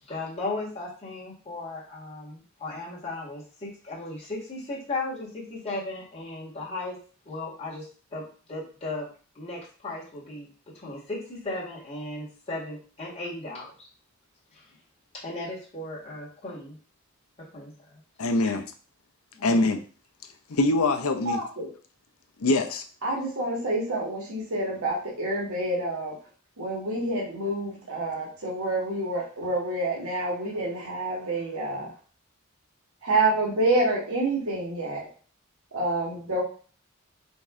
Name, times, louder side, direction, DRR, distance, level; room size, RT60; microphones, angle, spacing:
voice 1, 0.0-7.0 7.3-9.1 9.4-10.5 10.7-13.9 14.5-14.7 15.1-16.8 17.5-18.0 19.3-19.7, left 2 dB, 30° left, -6 dB, 1.8 m, -36 dB
voice 2, 18.2-18.7 19.4-19.8 20.5-21.4 22.4-22.8, left 2 dB, 85° left, 7 dB, 0.6 m, -23 dB
voice 3, 21.2-21.7 23.0-26.2 26.6-31.9 33.0-35.0 35.7-36.4, right 2 dB, 80° right, -3 dB, 1.5 m, -28 dB
5.2 x 2.6 x 3.6 m, 0.41 s
head